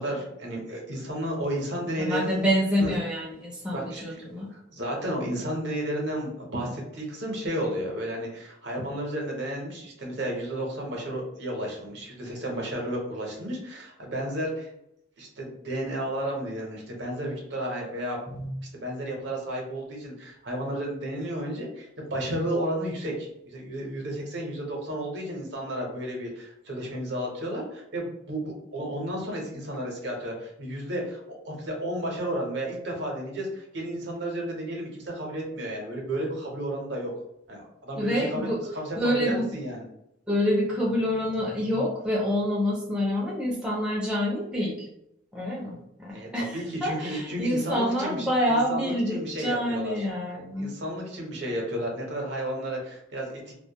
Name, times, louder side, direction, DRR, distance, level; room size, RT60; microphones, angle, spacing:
voice 1, 0.0-2.4 2.8-2.9 3.7-4.0 4.5-14.7 15.2-18.2 18.7-37.1 37.5-38.5 38.7-38.8 39.2-39.8 46.1-49.9 50.6-53.5, right 1 dB, 65° right, -1 dB, 0.7 m, -32 dB
voice 2, 2.0-4.5 18.3-18.5 37.9-38.6 39.0-39.5 40.3-44.9 45.3-50.7, equal, 5° right, -5 dB, 0.5 m, -27 dB
2.1 x 2.1 x 2.8 m, 0.79 s
head